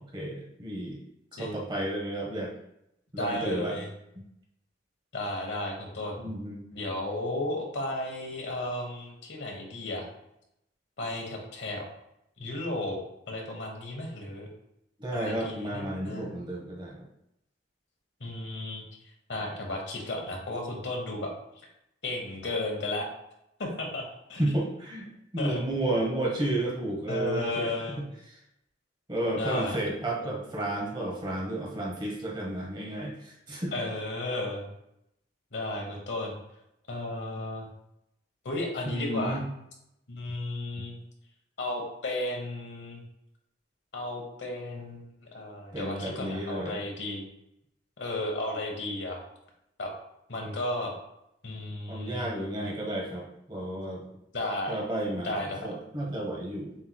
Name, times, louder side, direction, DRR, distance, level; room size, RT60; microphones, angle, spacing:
voice 1, 0.1-1.0 1.4-2.5 3.1-3.8 6.2-6.6 15.0-17.0 24.4-25.1 25.3-28.4 29.1-33.7 38.8-39.5 45.7-46.8 51.9-54.1 54.7-56.8, right 1 dB, 25° right, -2 dB, 0.9 m, -32 dB
voice 2, 3.2-3.9 5.1-6.2 6.7-10.1 11.0-11.8 12.4-13.0 13.3-14.5 15.1-16.3 18.2-18.8 19.3-21.3 22.0-23.1 23.6-24.0 24.3-24.6 25.4-25.6 27.1-28.0 29.4-29.8 30.2-30.3 33.7-34.7 35.5-36.3 36.9-37.7 38.4-39.4 40.1-41.0 41.6-43.0 43.9-47.3 48.0-49.2 49.8-49.9 50.3-50.9 51.4-52.3 54.3-54.8 55.2-55.7, left 2 dB, 70° left, 1 dB, 1.2 m, -34 dB
7.1 x 3.0 x 2.2 m, 0.81 s
head